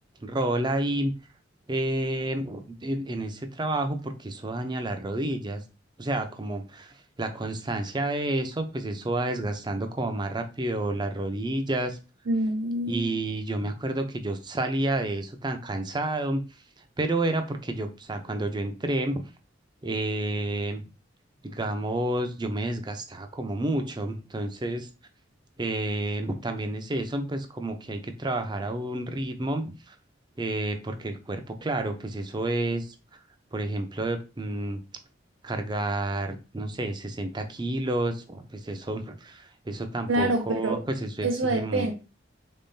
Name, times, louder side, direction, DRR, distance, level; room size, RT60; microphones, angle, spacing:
voice 1, 0.2-1.1 1.7-5.6 6.0-12.0 12.9-16.4 17.0-19.2 19.8-20.8 21.4-24.9 25.6-29.9 30.4-32.9 33.5-34.8 35.4-41.9, right 1 dB, 25° right, 7 dB, 0.5 m, -30 dB
voice 2, 12.3-13.2 40.1-40.8 41.2-41.9, right 1 dB, 75° right, 2 dB, 0.6 m, -26 dB
3.6 x 3.5 x 2.7 m, 0.31 s
head